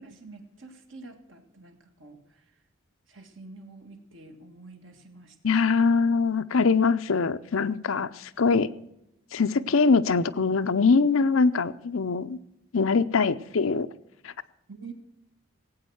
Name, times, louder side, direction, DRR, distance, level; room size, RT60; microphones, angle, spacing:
voice 1, 0.0-2.4 3.1-5.6 14.7-14.9, right 3 dB, 60° right, 4 dB, 1.8 m, -47 dB
voice 2, 5.4-8.7 9.3-12.4 12.7-13.9 14.2-14.3, left 4 dB, 70° left, 14 dB, 0.6 m, -23 dB
17.5 x 8.8 x 6.3 m, 0.83 s
head